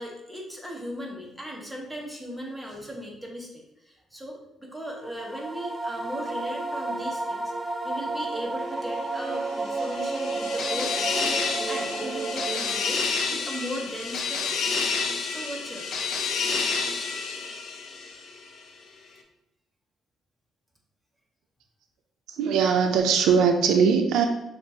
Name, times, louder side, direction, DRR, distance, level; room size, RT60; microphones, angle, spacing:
voice 1, 0.0-7.5 7.8-14.6 15.3-16.0, equal, ahead, -2 dB, 1.1 m, -37 dB
sound 1, 5.0-13.1, right 3 dB, 15° right, 0.5 m, -32 dB
sound 2, 9.4-18.5, left 4 dB, 70° left, 0.6 m, -29 dB
voice 2, 22.3-24.3, right 6 dB, 90° right, 4 dB, 0.4 m, -21 dB
6.5 x 2.5 x 2.8 m, 0.93 s
cardioid pair, 90°, 0 cm